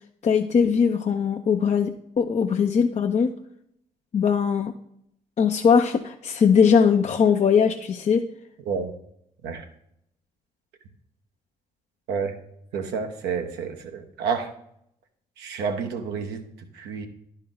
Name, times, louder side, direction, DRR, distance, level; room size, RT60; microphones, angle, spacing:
voice 1, 0.2-3.3 4.1-4.7 5.4-8.2, left 6 dB, 40° left, 4 dB, 0.6 m, -20 dB
voice 2, 12.7-14.5 15.4-16.4 16.7-17.1, right 6 dB, 75° right, 5 dB, 0.9 m, -29 dB
10.5 x 4.5 x 3.7 m, 0.72 s
hypercardioid pair, 45°, 17 cm